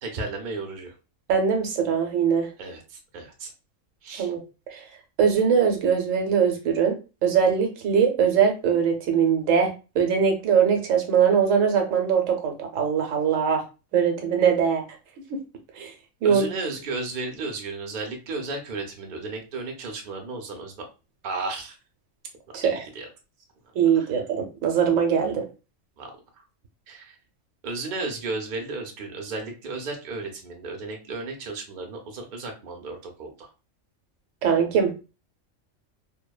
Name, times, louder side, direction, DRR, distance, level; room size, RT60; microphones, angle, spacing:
voice 1, 0.0-0.9 2.6-3.5 4.0-4.3 16.2-20.9 21.2-21.8 22.6-23.1 23.8-24.1 26.0-26.1 26.9-27.2 27.6-33.5, right 3 dB, 50° right, 2 dB, 0.6 m, -34 dB
voice 2, 1.3-2.5 4.2-4.4 4.7-4.8 5.2-7.0 7.2-9.7 9.9-13.6 13.9-14.8 15.3-15.4 15.8-15.9 16.2-16.5 22.5-22.8 23.7-25.4 34.4-35.0, right 7 dB, 80° right, 4 dB, 1.0 m, -21 dB
2.8 x 2.1 x 2.2 m, 0.31 s
omnidirectional pair, 1.4 m